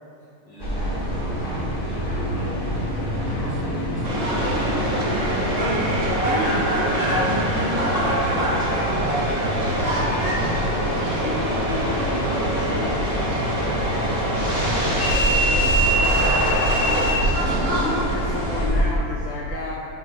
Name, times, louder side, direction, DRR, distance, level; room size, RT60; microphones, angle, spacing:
voice 1, 0.5-1.4 1.8-2.3 3.0-7.2 9.7-10.3 15.6-15.7 17.0-18.0, equal, 65° left, -9 dB, 1.4 m, -37 dB
sound 1, 0.6-18.8, equal, 50° left, 0.6 m, -26 dB
Subway metro underground, 4.0-18.7, right 1 dB, 35° right, 0.9 m, -24 dB
voice 2, 11.2-12.9 17.8-19.8, left 3 dB, 90° left, -3 dB, 1.5 m, -32 dB
voice 3, 14.9-16.8, equal, 75° right, -5 dB, 1.5 m, -36 dB
5.6 x 3.7 x 5.9 m, 2.7 s
omnidirectional pair, 3.6 m